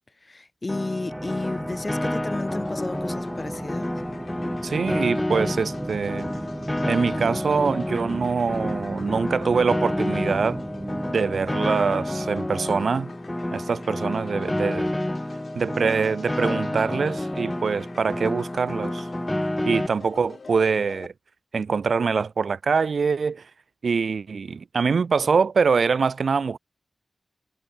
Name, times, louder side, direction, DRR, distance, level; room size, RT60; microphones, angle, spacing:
voice 1, 0.2-3.9, left 2 dB, 40° left, 4.0 m, -32 dB
Piano, 0.7-19.9, left 1 dB, 15° left, 0.4 m, -29 dB
sound 1, 1.1-12.9, right 1 dB, 20° right, 1.9 m, -36 dB
sound 2, 2.4-21.1, left 4 dB, 65° left, 7.7 m, -46 dB
voice 2, 4.6-6.3 6.9-10.6 11.1-13.1 13.5-14.9 15.5-19.1 19.6-21.1 21.5-23.5 23.8-26.6, right 5 dB, 80° right, 1.6 m, -24 dB
cardioid pair, 60°, 0 cm